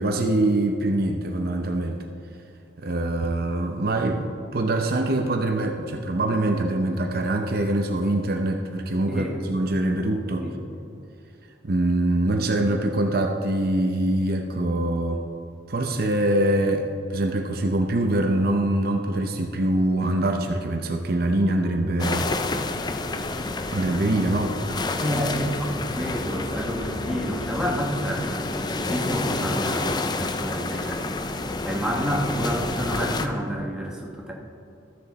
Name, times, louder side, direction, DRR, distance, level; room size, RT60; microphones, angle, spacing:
voice 1, 0.0-2.0 2.8-10.5 11.6-15.2 15.7-22.3 23.7-24.6, right 1 dB, 50° right, 4 dB, 0.6 m, -24 dB
Pirate Ship at Bay, 22.0-33.3, left 2 dB, 20° left, 0.4 m, -29 dB
voice 2, 25.0-34.3, equal, 5° right, -2 dB, 1.2 m, -29 dB
14.0 x 6.9 x 4.2 m, 2.5 s
head